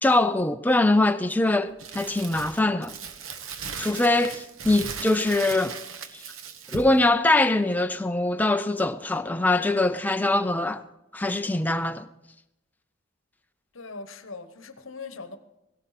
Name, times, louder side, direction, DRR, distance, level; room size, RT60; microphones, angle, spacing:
voice 1, 0.0-3.0 3.8-5.8 6.1-6.2 6.7-10.8 11.1-12.1, left 2 dB, 10° left, 0.4 m, -23 dB
Crumpling crinkling, 1.8-7.0, right 6 dB, 75° right, 1.0 m, -38 dB
voice 2, 13.7-15.4, left 4 dB, 70° left, 1.1 m, -40 dB
17.0 x 17.0 x 4.2 m
head